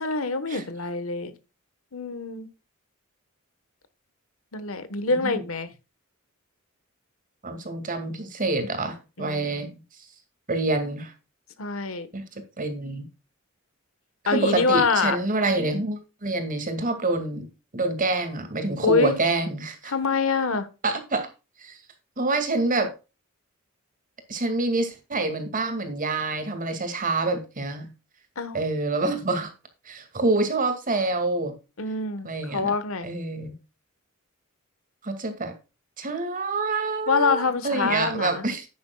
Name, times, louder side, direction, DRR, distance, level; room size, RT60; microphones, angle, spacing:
voice 1, 0.0-1.3 1.9-2.5 4.5-5.7 9.2-9.7 11.6-12.1 14.3-15.2 18.8-19.1 19.9-20.7 28.4-28.6 31.8-33.1 37.1-38.4, left 4 dB, 75° left, 1.2 m, -25 dB
voice 2, 5.1-5.4 7.4-9.8 10.5-11.1 12.1-12.2 12.6-13.1 14.3-17.5 17.7-19.9 20.8-21.3 21.6-21.8 22.2-22.9 24.3-27.9 28.5-29.5 29.9-31.5 32.2-32.7 33.0-33.5 35.0-35.5 36.0-38.7, right 2 dB, 40° right, 2.2 m, -27 dB
10.5 x 9.6 x 2.3 m
head